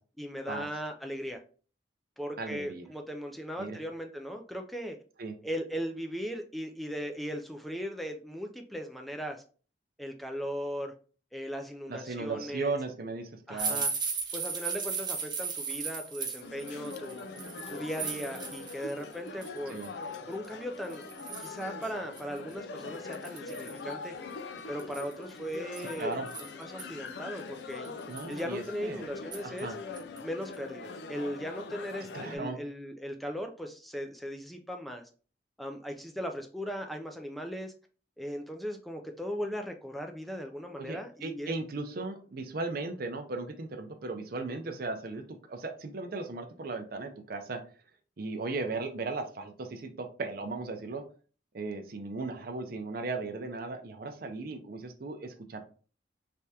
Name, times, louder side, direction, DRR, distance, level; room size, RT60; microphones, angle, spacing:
voice 1, 0.2-1.4 2.2-5.0 5.4-9.4 10.0-10.9 11.3-12.7 13.5-13.9 14.3-17.3 17.7-19.8 20.3-21.1 21.4-24.1 24.7-26.2 26.6-27.9 28.3-29.7 30.2-35.0 35.6-37.7 38.2-41.5, equal, ahead, 4 dB, 0.4 m, -38 dB
voice 2, 2.4-2.9 3.6-3.8 5.2-5.4 11.9-13.8 19.7-19.9 26.0-26.3 28.1-29.1 29.4-29.8 32.1-32.6 40.8-47.6 48.2-51.0 51.5-55.6, right 3 dB, 55° right, 5 dB, 0.5 m, -37 dB
sound 1, 13.6-18.9 19.3-19.9 20.4-20.5 20.9-21.6 22.2-22.3 22.5-22.6 23.1-23.8 24.8-26.8 27.4-27.5 27.8-28.4 29.3-29.6 29.9-30.2 30.5-30.6, right 5 dB, 25° right, 0.7 m, -36 dB
sound 2, 16.4-32.4, left 4 dB, 70° left, 0.4 m, -43 dB
3.4 x 3.4 x 2.7 m, 0.39 s
head